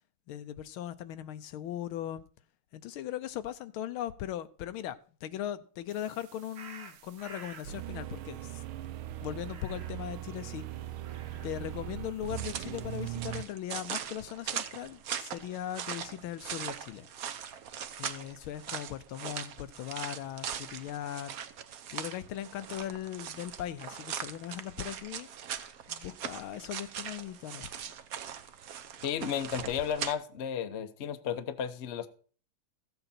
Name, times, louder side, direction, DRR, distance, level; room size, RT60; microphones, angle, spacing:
voice 1, 0.3-2.2 2.7-8.6 9.2-10.7 11.4-17.1 18.0-21.3 21.9-25.3 25.9-27.7, left 11 dB, 80° left, 1.5 m, -39 dB
sound 1, 5.9-13.4, right 13 dB, 80° right, 1.5 m, -41 dB
sound 2, 6.6-7.7 9.4-10.1 10.9-11.7, right 5 dB, 40° right, 1.1 m, -50 dB
sound 3, 12.3-30.1, right 8 dB, 60° right, 1.0 m, -40 dB
voice 2, 29.0-32.1, left 8 dB, 50° left, 0.8 m, -33 dB
15.0 x 7.9 x 4.3 m
omnidirectional pair, 2.3 m